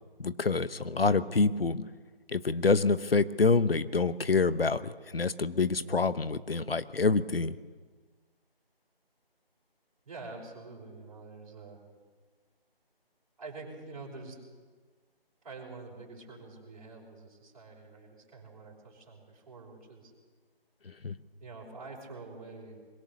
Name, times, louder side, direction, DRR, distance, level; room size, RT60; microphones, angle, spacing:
voice 1, 0.2-1.9 2.3-7.6 21.0-21.1, left 4 dB, 70° left, 14 dB, 1.1 m, -27 dB
voice 2, 10.0-11.8 13.4-14.4 15.4-20.1 21.4-22.8, right 3 dB, 35° right, -2 dB, 5.9 m, -46 dB
21.5 x 17.5 x 7.0 m, 1.5 s
figure-of-eight pair, 160°, 30 cm